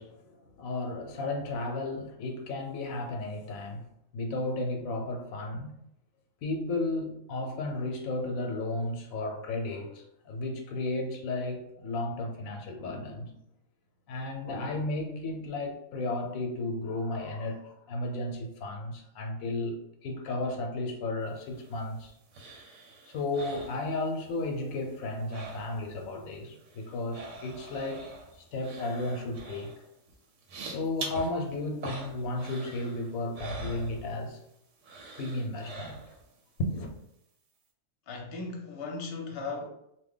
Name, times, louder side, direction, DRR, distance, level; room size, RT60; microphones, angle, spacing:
voice 1, 0.0-5.8 6.4-13.4 14.1-22.1 23.1-28.1 28.4-29.7 30.7-34.4 35.2-36.0 36.6-36.9, left 2 dB, 85° left, 1.0 m, -34 dB
sound 1, 21.4-24.4 24.7-26.1 26.3-34.5 34.8-36.4 36.8-36.9, right 3 dB, 70° right, 1.0 m, -44 dB
voice 2, 38.1-39.7, left 3 dB, 55° left, 0.8 m, -37 dB
2.8 x 2.1 x 3.6 m
omnidirectional pair, 1.4 m